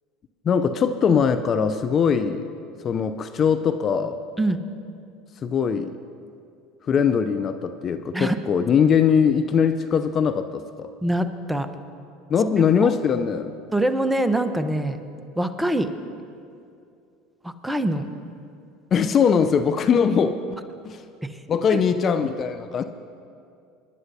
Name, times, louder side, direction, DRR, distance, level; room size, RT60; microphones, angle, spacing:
voice 1, 0.4-2.5 2.8-4.2 5.4-5.9 6.9-10.9 12.3-13.5 18.9-20.4 20.8-21.0 21.5-22.8, left 6 dB, 40° left, 10 dB, 0.5 m, -21 dB
voice 2, 11.0-11.7 12.6-12.9 13.7-15.0 15.4-15.9 17.4-18.1 21.2-21.4, right 1 dB, 5° right, 9 dB, 0.9 m, -24 dB
27.5 x 11.0 x 2.8 m, 2.5 s
hypercardioid pair, 85°, 0 cm